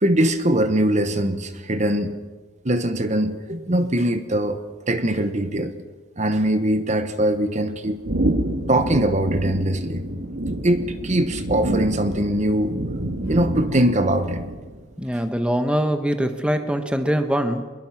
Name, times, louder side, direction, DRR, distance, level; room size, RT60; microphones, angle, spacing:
voice 1, 0.0-2.1 2.6-4.6 4.9-5.7 6.2-8.0 8.7-10.0 10.6-12.7 13.3-14.4, right 1 dB, 40° right, 9 dB, 1.2 m, -22 dB
sound 1, 8.0-14.8, right 1 dB, 65° right, 1.7 m, -27 dB
voice 2, 15.0-17.6, equal, 5° right, 7 dB, 1.2 m, -23 dB
24.0 x 22.0 x 5.9 m, 1.3 s
head